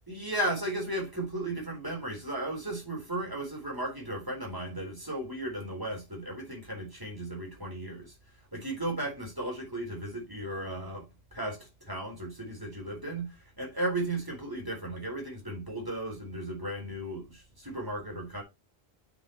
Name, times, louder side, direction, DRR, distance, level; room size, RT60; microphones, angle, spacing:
voice 1, 0.1-8.1 8.5-18.4, right 1 dB, 20° right, 4.0 m, -35 dB
9.3 x 6.2 x 3.0 m
omnidirectional pair, 1.1 m